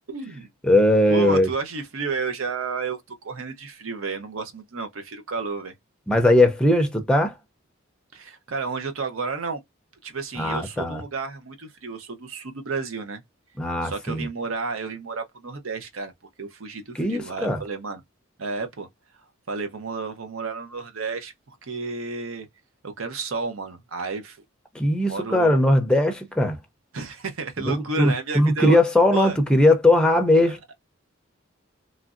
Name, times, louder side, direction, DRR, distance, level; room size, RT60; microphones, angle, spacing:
voice 1, 0.1-0.8 1.1-5.7 8.1-9.6 10.0-13.2 13.8-16.1 16.4-18.0 18.4-18.9 19.5-22.5 22.8-24.4 25.0-25.7 26.9-28.8 29.1-29.4 30.4-30.7, right 4 dB, 85° right, 0.7 m, -31 dB
voice 2, 0.6-1.5 6.1-7.3 10.4-11.0 13.6-14.3 16.9-17.6 24.7-26.6 27.7-30.6, left 1 dB, 5° left, 0.4 m, -19 dB
3.1 x 2.5 x 2.4 m
head